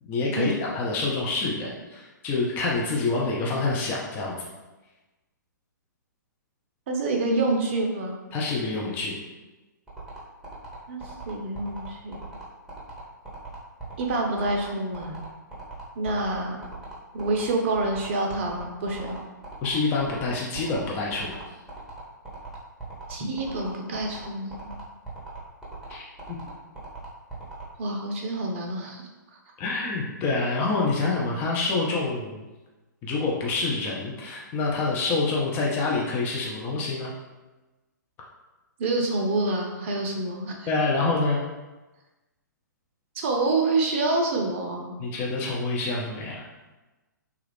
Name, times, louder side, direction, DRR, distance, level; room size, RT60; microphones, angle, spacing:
voice 1, 0.0-4.4 8.3-9.2 19.6-21.4 25.9-26.0 29.6-32.4 33.0-37.1 40.7-41.4 45.0-46.5, left 3 dB, 20° left, -3 dB, 0.5 m, -27 dB
voice 2, 6.9-8.1 10.9-11.0 11.3-12.2 14.0-15.2 16.0-16.7 17.1-19.2 23.1-24.7 27.8-29.1 38.8-40.7 43.1-45.0, right 2 dB, 35° right, 1 dB, 0.6 m, -27 dB
sound 1, 9.9-27.6, right 3 dB, 5° right, 0.8 m, -40 dB
3.1 x 2.3 x 3.3 m, 1.1 s
figure-of-eight pair, 120°, 10 cm